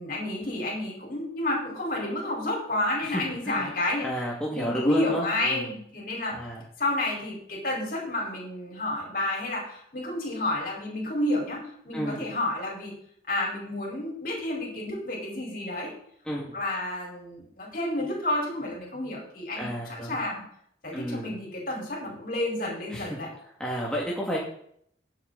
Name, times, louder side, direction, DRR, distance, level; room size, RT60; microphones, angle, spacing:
voice 1, 0.0-4.1 4.5-6.4 6.8-12.9 13.3-15.9 16.5-20.4 20.8-23.3, left 1 dB, 50° left, -1 dB, 4.8 m, -30 dB
voice 2, 3.0-5.7 6.3-6.6 11.9-12.2 16.3-16.5 19.6-20.2 20.9-21.3 22.9-23.2 23.6-24.4, equal, 5° left, -5 dB, 2.2 m, -32 dB
15.0 x 8.0 x 4.1 m, 0.66 s
head